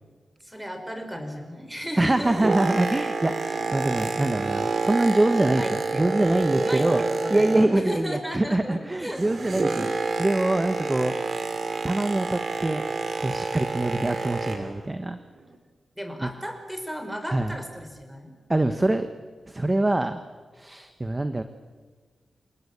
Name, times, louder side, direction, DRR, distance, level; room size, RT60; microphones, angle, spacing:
voice 1, 0.4-2.5 5.4-9.2 9.7-9.9 16.0-18.4, equal, 5° right, 6 dB, 5.5 m, -35 dB
Boat Water vehicle, 1.9-8.1 8.3-14.8 15.4-15.6, right 3 dB, 60° right, 3.3 m, -28 dB
voice 2, 2.0-7.0 7.3-9.9 10.2-11.1 11.8-12.8 13.2-15.2 16.2-16.3 17.3-17.5 18.5-19.1 19.5-20.2 20.5-21.4, right 2 dB, 20° right, 9 dB, 1.3 m, -24 dB
28.0 x 20.0 x 8.7 m, 1.4 s
cardioid pair, 80°, 0 cm